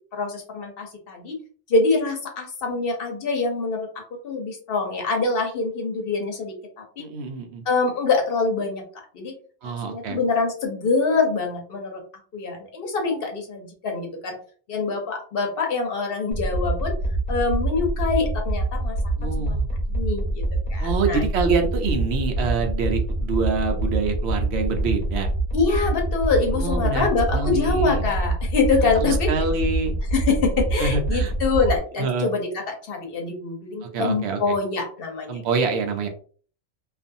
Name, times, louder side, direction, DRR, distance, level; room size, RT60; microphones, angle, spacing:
voice 1, 0.1-1.4 1.7-7.1 7.7-8.8 9.1-9.3 9.6-12.0 12.3-14.4 14.7-16.9 17.3-19.0 19.2-19.6 19.9-20.4 20.7-21.2 25.5-29.3 30.1-35.4, left 4 dB, 55° left, 2 dB, 0.9 m, -25 dB
voice 2, 7.0-7.6 9.6-10.2 19.2-19.7 20.8-25.3 26.5-28.1 29.0-30.0 30.8-31.3 32.0-32.3 33.8-34.4 35.3-36.1, right 4 dB, 70° right, 4 dB, 0.9 m, -26 dB
sound 1, 16.3-31.8, right 2 dB, 45° right, 0.9 m, -25 dB
2.5 x 2.4 x 2.6 m, 0.44 s
omnidirectional pair, 1.2 m